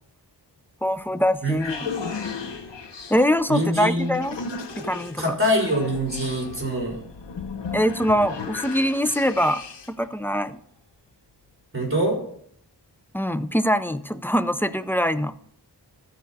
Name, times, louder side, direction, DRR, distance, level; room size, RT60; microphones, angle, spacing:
voice 1, 0.8-1.9 3.1-4.4 4.8-5.2 7.7-9.6 9.9-10.6 13.1-15.3, equal, 5° left, 12 dB, 0.4 m, -23 dB
sound 1, 1.0-10.0, left 5 dB, 90° left, 0.9 m, -36 dB
voice 2, 3.5-4.1 5.2-7.0 11.7-12.2, equal, 30° right, -2 dB, 3.9 m, -24 dB
14.0 x 4.7 x 4.0 m, 0.65 s
wide cardioid pair, 65°, 41 cm